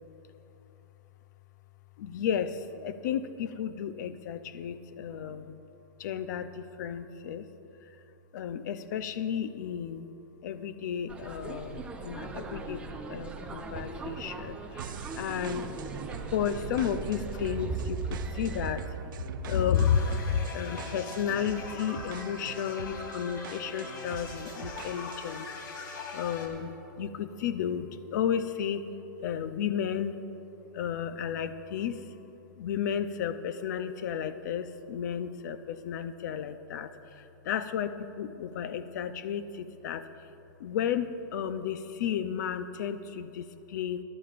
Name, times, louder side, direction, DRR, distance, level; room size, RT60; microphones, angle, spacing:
voice 1, 2.0-5.6 6.0-7.5 8.3-10.1 10.4-12.8 13.1-15.8 16.3-19.2 19.4-25.5 26.1-28.9 29.2-30.2 30.7-32.0 32.6-40.0 40.6-44.0, left 8 dB, 55° left, 11 dB, 0.6 m, -33 dB
sound 1, 11.1-18.7, right 4 dB, 10° right, 0.6 m, -38 dB
sound 2, 14.8-25.4, right 10 dB, 70° right, 0.5 m, -44 dB
sound 3, 19.7-26.5, left 3 dB, 75° left, 2.5 m, -41 dB
23.0 x 11.0 x 2.5 m, 2.9 s
supercardioid pair, 165°, 11 cm